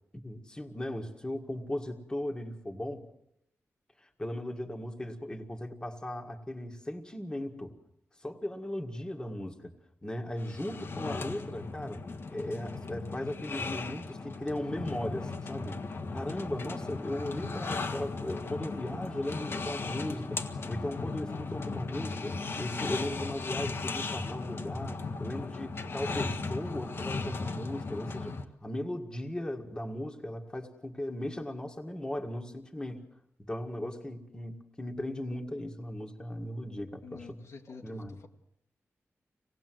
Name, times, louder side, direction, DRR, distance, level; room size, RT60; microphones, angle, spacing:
voice 1, 0.2-3.0 4.0-7.7 8.2-9.7 10.0-12.0 12.3-15.8 16.1-33.0 33.5-37.3 37.8-38.2, left 1 dB, 15° left, 3 dB, 1.9 m, -37 dB
sound 1, 10.4-28.4, left 3 dB, 50° left, 1.5 m, -37 dB
voice 2, 37.0-38.3, left 5 dB, 75° left, 2 dB, 2.0 m, -49 dB
26.0 x 18.5 x 7.8 m, 0.79 s
wide cardioid pair, 130°, 5 cm